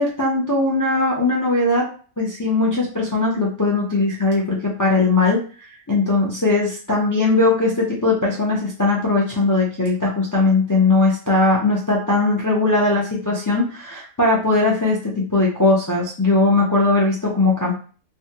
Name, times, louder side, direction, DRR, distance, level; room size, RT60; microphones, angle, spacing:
voice 1, 0.0-1.9 2.2-5.4 5.9-17.7, left 3 dB, 25° left, -4 dB, 0.4 m, -19 dB
3.4 x 2.2 x 2.8 m, 0.39 s
omnidirectional pair, 1.4 m